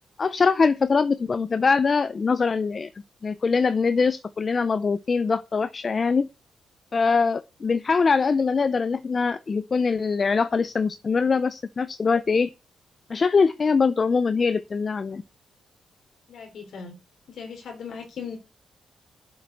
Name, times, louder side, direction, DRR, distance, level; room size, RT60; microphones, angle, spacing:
voice 1, 0.2-2.9 3.2-6.3 6.9-12.5 13.1-15.2, left 5 dB, 35° left, 0.6 m, -23 dB
voice 2, 16.3-17.0 17.3-18.4, left 6 dB, 65° left, 3.5 m, -38 dB
7.9 x 7.7 x 8.5 m
cardioid pair, 115°, 0 cm